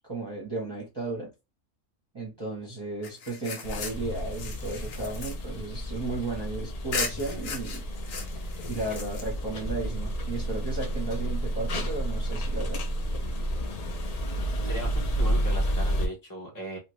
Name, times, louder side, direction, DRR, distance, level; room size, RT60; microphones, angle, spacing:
voice 1, 0.1-1.3 2.1-7.8 8.7-12.8, right 3 dB, 25° right, 0.7 m, -34 dB
sound 1, 3.0-6.4 6.9-9.6, left 5 dB, 90° left, 1.2 m, -37 dB
sound 2, 3.6-16.1, right 1 dB, 60° left, 0.4 m, -31 dB
voice 2, 14.6-16.8, equal, 20° left, 0.7 m, -37 dB
2.7 x 2.5 x 3.0 m
omnidirectional pair, 1.4 m